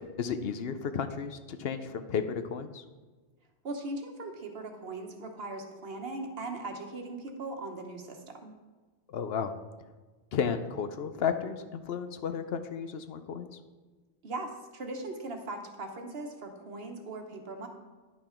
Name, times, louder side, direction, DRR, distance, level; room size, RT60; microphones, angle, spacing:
voice 1, 0.2-2.8 9.1-9.5 10.3-13.5, left 7 dB, 70° left, 9 dB, 0.8 m, -33 dB
voice 2, 3.6-8.5 14.2-17.7, right 2 dB, 65° right, 4 dB, 1.2 m, -39 dB
10.5 x 5.7 x 4.4 m, 1.3 s
omnidirectional pair, 1.1 m